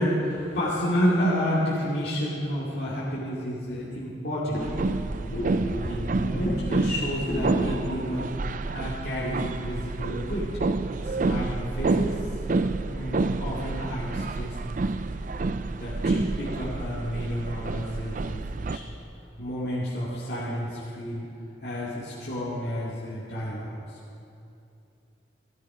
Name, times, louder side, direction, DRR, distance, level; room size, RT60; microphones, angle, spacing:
voice 1, 0.0-8.3 8.7-10.5 11.0-12.2 12.9-15.0 15.8-18.8 19.4-21.2 21.6-24.0, equal, 60° left, -9 dB, 2.5 m, -30 dB
sound 1, 4.6-18.8, right 3 dB, 45° right, 0.4 m, -29 dB
14.5 x 13.0 x 5.0 m, 2.7 s
head